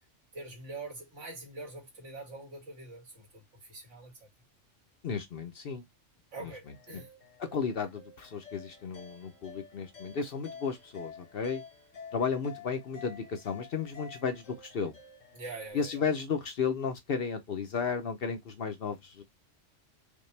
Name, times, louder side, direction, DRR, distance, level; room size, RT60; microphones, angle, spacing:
voice 1, 0.3-4.3 6.3-7.1 15.3-16.0, right 3 dB, 70° right, 2.3 m, -44 dB
voice 2, 5.0-5.8 6.4-6.5 6.9-7.0 7.4-11.6 12.1-15.0 15.7-19.2, left 6 dB, 55° left, 0.8 m, -33 dB
sound 1, 6.6-15.7, left 6 dB, 85° left, 1.6 m, -50 dB
5.1 x 2.3 x 3.2 m
omnidirectional pair, 1.3 m